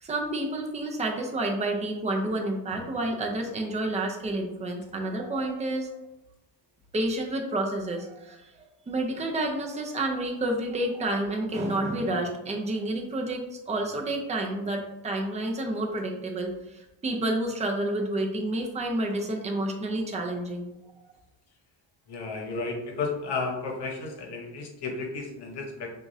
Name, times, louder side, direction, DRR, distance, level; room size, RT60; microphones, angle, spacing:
voice 1, 0.0-5.9 6.9-8.5 8.9-20.7, right 1 dB, 15° right, 1 dB, 0.5 m, -29 dB
voice 2, 22.1-25.9, left 4 dB, 60° left, 2 dB, 1.0 m, -33 dB
6.2 x 2.5 x 2.7 m, 0.94 s
cardioid pair, 145°, 46 cm